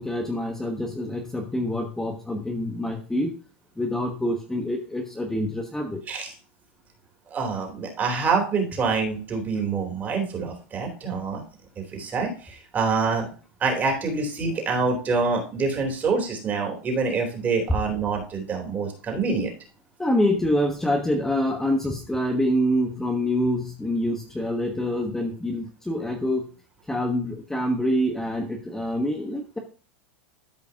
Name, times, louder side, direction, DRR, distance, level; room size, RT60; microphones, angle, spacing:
voice 1, 0.0-3.3 3.8-6.0 20.0-26.5 26.9-29.6, left 1 dB, 5° left, 2 dB, 1.2 m, -26 dB
voice 2, 7.3-11.4 11.9-13.3 13.6-19.5, right 4 dB, 25° right, 2 dB, 3.2 m, -26 dB
13.0 x 5.1 x 2.8 m, 0.38 s
supercardioid pair, 135°, 7 cm